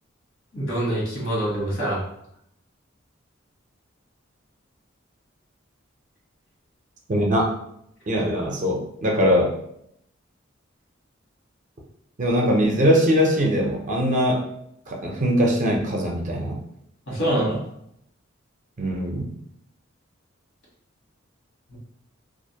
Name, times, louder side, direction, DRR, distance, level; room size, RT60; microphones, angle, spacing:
voice 1, 0.5-2.0 17.1-17.6 21.7-21.8, right 1 dB, 70° left, -5 dB, 1.2 m, -25 dB
voice 2, 7.1-7.5 8.1-9.5 12.2-14.4 14.9-16.6 18.8-19.3, equal, 40° right, 0 dB, 0.5 m, -21 dB
2.4 x 2.1 x 2.7 m, 0.73 s
head